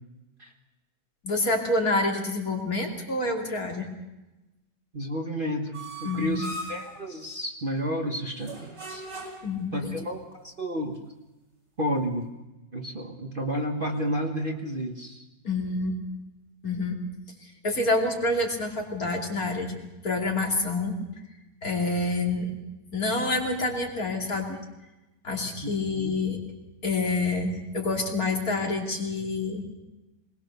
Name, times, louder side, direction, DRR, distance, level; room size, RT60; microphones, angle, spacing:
voice 1, 1.2-3.9 6.0-6.4 9.4-10.0 15.4-15.9 16.6-17.0 17.6-19.7 20.0-20.9 21.6-22.5 22.9-24.6 25.2-26.4 26.8-29.6, left 2 dB, 55° left, 1 dB, 3.4 m, -27 dB
voice 2, 4.9-9.1 9.7-11.0 11.8-12.3 12.7-15.2 25.6-26.1, equal, 35° right, 3 dB, 1.4 m, -31 dB
sound 1, 5.7-6.9 8.4-9.6, right 1 dB, 75° right, 5.6 m, -38 dB
21.0 x 20.5 x 6.8 m, 1.0 s
omnidirectional pair, 1.9 m